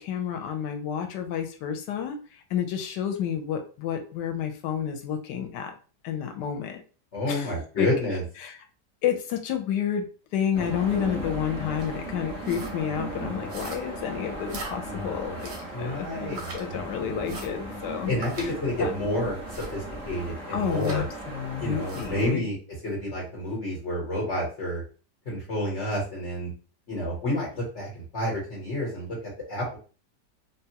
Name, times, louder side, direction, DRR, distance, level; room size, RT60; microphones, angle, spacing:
voice 1, 0.0-5.7 6.0-6.8 7.3-7.9 8.4-8.6 9.0-10.0 10.3-15.5 15.8-18.1 18.4-18.9 20.5-22.5, left 8 dB, 90° left, 6 dB, 1.2 m, -30 dB
voice 2, 7.1-8.2 15.7-16.4 18.1-19.4 19.7-21.0 21.6-22.5 22.8-24.8 25.2-26.5 26.9-29.2 29.5-29.8, left 1 dB, 45° left, -4 dB, 1.3 m, -29 dB
sound 1, 10.5-22.3, right 1 dB, 5° right, 1.0 m, -37 dB
sound 2, 11.8-12.0 12.4-12.8 13.5-14.0 14.5-14.8 15.4-15.7 16.3-16.6 17.2-17.5 18.2-18.5 19.5-19.8 20.6-21.0 21.8-22.1, right 2 dB, 80° right, 1.7 m, -40 dB
3.5 x 2.3 x 2.8 m, 0.36 s
omnidirectional pair, 1.8 m